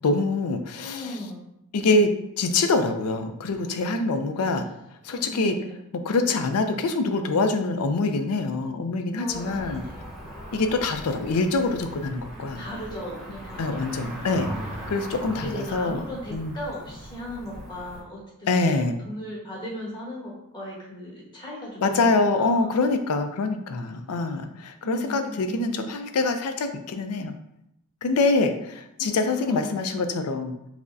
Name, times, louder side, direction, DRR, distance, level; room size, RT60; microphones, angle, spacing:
voice 1, 0.0-1.1 1.7-2.1 2.4-4.7 5.0-5.6 6.0-9.8 10.5-12.6 13.6-14.5 14.9-16.0 16.3-16.5 18.5-19.0 21.8-27.3 28.0-30.6, left 3 dB, 85° left, 8 dB, 0.4 m, -25 dB
voice 2, 0.8-1.5 5.1-5.8 9.2-10.0 12.5-14.0 15.4-22.7 24.8-25.9 29.2-30.0, equal, 20° left, -6 dB, 1.2 m, -38 dB
Cricket / Motor vehicle (road), 9.3-18.0, right 1 dB, ahead, 0.9 m, -39 dB
5.8 x 2.1 x 2.6 m, 0.80 s
head